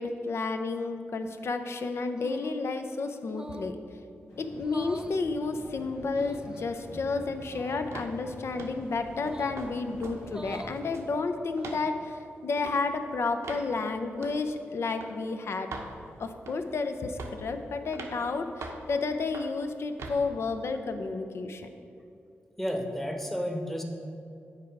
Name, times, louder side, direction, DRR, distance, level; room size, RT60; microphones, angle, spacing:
voice 1, 0.0-3.8 4.4-15.7 16.2-21.7, left 3 dB, 65° left, 7 dB, 0.6 m, -31 dB
sound 1, 2.2-2.7 3.3-3.8 4.6-5.2 6.1-6.6 7.5-7.8 9.2-9.6 10.2-10.8 11.5-12.0, right 1 dB, 15° right, 0.4 m, -44 dB
sound 2, 4.3-10.9, equal, 90° left, 1.5 m, -47 dB
sound 3, 7.9-8.2 8.6-8.8 9.3-9.7 10.0-10.2 10.5-11.1 11.6-11.8 12.6-12.8 13.4-13.7 14.2-14.4 15.0-15.1 15.7-15.9 16.5-16.7 17.2-17.5 17.9-18.2 18.6-18.9 19.3-19.6 20.0-20.2, right 3 dB, 85° right, 0.8 m, -41 dB
voice 2, 22.6-23.8, equal, 5° left, 2 dB, 1.0 m, -31 dB
8.5 x 4.8 x 4.6 m, 2.6 s
cardioid pair, 60°, 5 cm